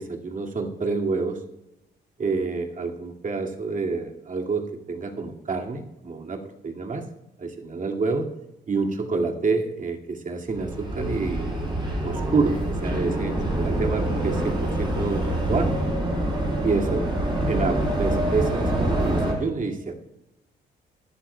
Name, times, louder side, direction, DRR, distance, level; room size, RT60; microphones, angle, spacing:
voice 1, 0.0-1.4 2.2-7.0 7.4-8.3 8.7-11.4 12.0-15.7 16.6-17.1 17.5-20.0, right 4 dB, 40° right, 1 dB, 2.2 m, -28 dB
sound 1, 10.5-19.3, right 1 dB, 25° right, 5.2 m, -25 dB
21.0 x 12.0 x 2.2 m, 0.91 s
cardioid pair, 90°, 20 cm